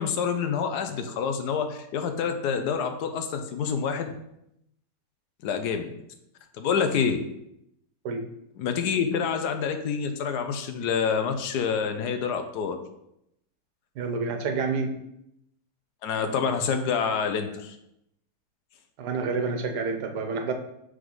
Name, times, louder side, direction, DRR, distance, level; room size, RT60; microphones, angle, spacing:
voice 1, 0.0-4.1 5.4-5.9 6.6-7.2 8.6-12.8 16.0-17.7, left 6 dB, 85° left, 6 dB, 1.3 m, -27 dB
voice 2, 14.0-14.9 19.0-20.5, right 4 dB, 80° right, 5 dB, 1.5 m, -28 dB
6.7 x 3.7 x 5.4 m, 0.79 s
omnidirectional pair, 1.7 m